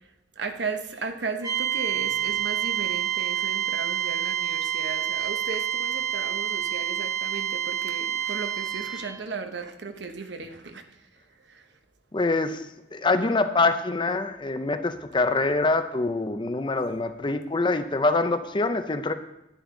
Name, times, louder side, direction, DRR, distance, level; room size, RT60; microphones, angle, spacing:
voice 1, 0.4-11.1 11.4-11.7, right 4 dB, 80° right, 7 dB, 0.9 m, -36 dB
sound 1, 1.4-9.2, right 10 dB, 20° right, 1.1 m, -28 dB
voice 2, 12.1-12.6 12.9-19.1, left 3 dB, 25° left, 9 dB, 0.5 m, -25 dB
10.5 x 9.3 x 3.8 m, 0.89 s
head